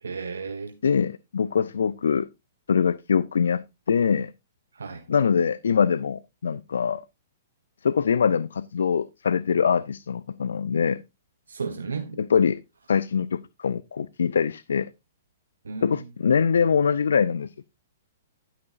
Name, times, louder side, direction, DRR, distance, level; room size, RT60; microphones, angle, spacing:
voice 1, 0.0-0.8 4.7-5.0 11.5-12.2 15.6-15.9, right 5 dB, 80° right, 1.2 m, -33 dB
voice 2, 0.8-2.3 2.7-3.6 3.9-4.3 5.1-7.0 7.8-11.0 12.2-12.6 12.9-14.9 15.8-17.7, left 6 dB, 70° left, 0.4 m, -23 dB
11.5 x 9.9 x 2.5 m
figure-of-eight pair, 115°, 0 cm